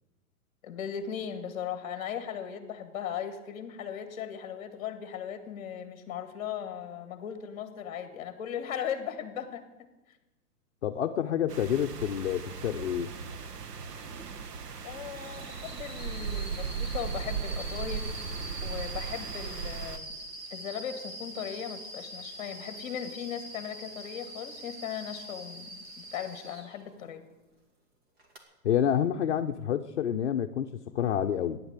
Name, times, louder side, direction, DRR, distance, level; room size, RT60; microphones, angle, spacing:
voice 1, 0.6-9.6 14.8-20.1 20.5-27.2, left 8 dB, 25° left, 9 dB, 1.7 m, -38 dB
voice 2, 10.8-13.1 28.6-31.6, left 9 dB, 50° left, 5 dB, 0.7 m, -28 dB
sound 1, 11.5-20.0, right 6 dB, 80° right, 1.4 m, -37 dB
sound 2, 15.2-26.8 28.2-28.4, right 1 dB, 40° right, 2.8 m, -44 dB
15.5 x 10.5 x 8.1 m, 1.0 s
hypercardioid pair, 180°, 46 cm